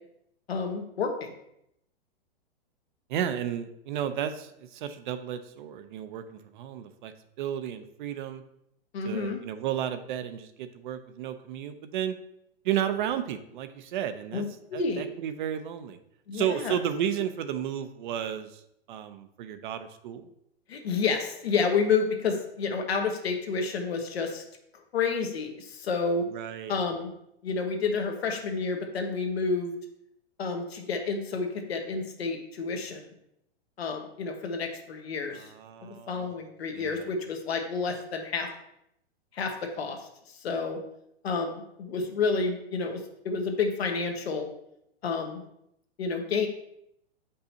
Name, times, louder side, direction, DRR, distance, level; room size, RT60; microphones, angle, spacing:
voice 1, 0.5-1.3 8.9-9.4 14.3-15.0 16.3-16.7 20.7-24.4 24.9-26.3 26.7-27.1 27.4-29.7 30.4-33.1 33.8-35.4 35.8-38.5 39.3-40.8 41.2-43.0 43.2-44.5 45.0-45.4 46.0-46.5, left 4 dB, 75° left, 3 dB, 1.4 m, -30 dB
voice 2, 3.1-8.4 9.0-12.1 12.6-14.4 14.7-16.0 16.3-18.6 18.9-20.3 26.3-26.8 35.3-36.4 36.7-37.1, right 9 dB, 50° right, 10 dB, 0.7 m, -33 dB
7.8 x 5.5 x 2.8 m, 0.77 s
hypercardioid pair, 120°, 31 cm